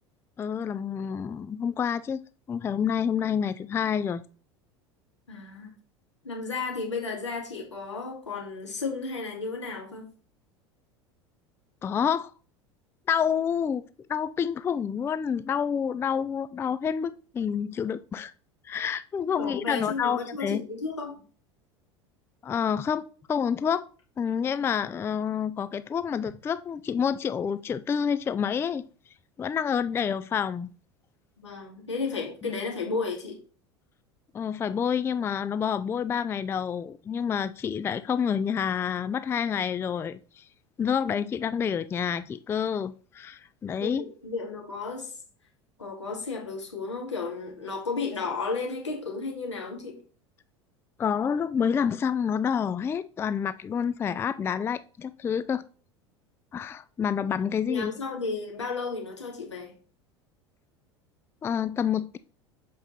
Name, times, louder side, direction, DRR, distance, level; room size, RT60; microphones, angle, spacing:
voice 1, 0.4-2.2 2.5-4.2 11.8-12.3 13.1-13.8 14.1-18.3 18.6-20.6 22.4-23.9 24.2-28.8 29.4-30.7 32.4-32.5 34.3-40.4 40.8-44.0 51.0-55.6 56.5-57.9 61.4-62.2, left 7 dB, 15° left, 0.3 m, -28 dB
voice 2, 5.3-5.7 6.2-10.0 19.4-21.1 31.4-33.4 43.8-45.1 45.8-50.0 57.7-59.7, left 4 dB, 80° left, 2.5 m, -33 dB
6.9 x 5.3 x 4.2 m
figure-of-eight pair, 75°, 15 cm